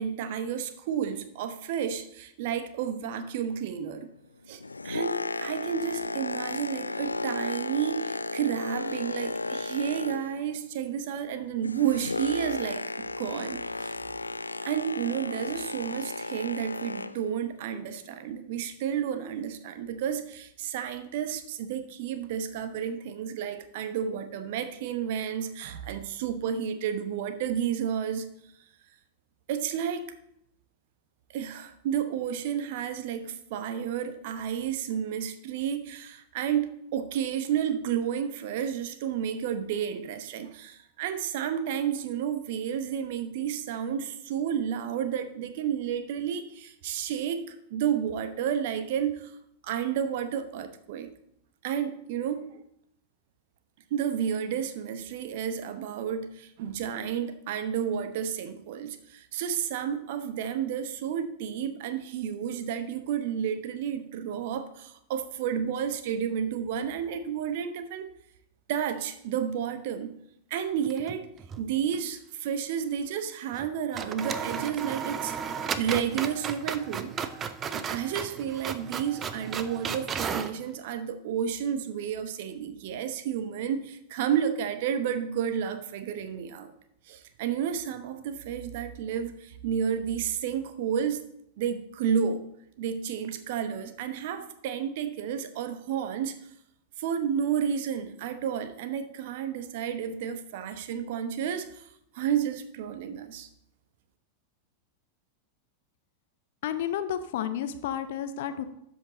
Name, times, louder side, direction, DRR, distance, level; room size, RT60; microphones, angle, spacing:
voice 1, 0.0-4.1 4.5-13.9 14.6-28.3 29.5-30.1 31.3-49.4 49.6-51.1 51.6-52.6 53.9-68.1 68.7-70.2 70.5-71.3 71.6-75.4 75.8-77.1 77.7-86.7 87.1-91.2 91.6-92.4 92.8-96.4 97.0-103.5, right 8 dB, 50° right, 10 dB, 0.9 m, -31 dB
Boat Water vehicle, 4.4-10.6 10.9-17.3 17.9-18.1, left 2 dB, 80° left, 0.3 m, -34 dB
sound 1, 70.8-71.7 71.9-72.0 73.5-73.7 73.9-80.6, right 7 dB, 25° right, 0.6 m, -34 dB
voice 2, 106.6-108.7, left 9 dB, 55° left, 10 dB, 0.7 m, -31 dB
12.5 x 5.3 x 4.0 m, 0.76 s
figure-of-eight pair, 90°, 0 cm